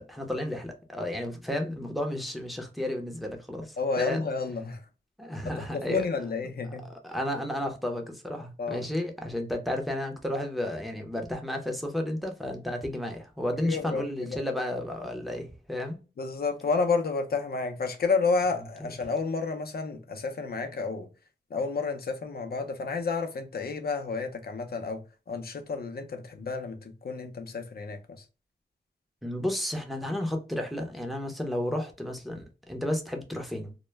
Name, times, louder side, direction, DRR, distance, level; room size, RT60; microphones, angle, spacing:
voice 1, 0.0-4.2 5.2-6.0 7.0-16.0 29.2-33.7, left 1 dB, ahead, 0.7 m, -32 dB
voice 2, 3.8-4.9 5.4-6.9 8.6-8.9 13.6-14.4 16.2-21.1 21.5-28.2, left 4 dB, 55° left, 0.6 m, -31 dB
2.2 x 2.1 x 3.1 m
cardioid pair, 80°, 19 cm